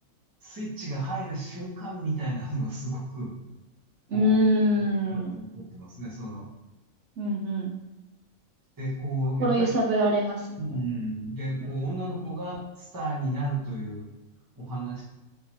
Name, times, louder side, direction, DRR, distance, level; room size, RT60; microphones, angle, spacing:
voice 1, 0.4-3.3 4.1-4.4 5.1-6.5 8.8-9.7 10.6-14.1 14.6-15.0, right 1 dB, 20° right, -5 dB, 0.8 m, -32 dB
voice 2, 4.1-5.4 7.2-7.7 9.4-10.8 12.0-12.1, equal, 70° right, -1 dB, 0.9 m, -24 dB
3.7 x 2.7 x 3.0 m, 1.1 s
omnidirectional pair, 1.4 m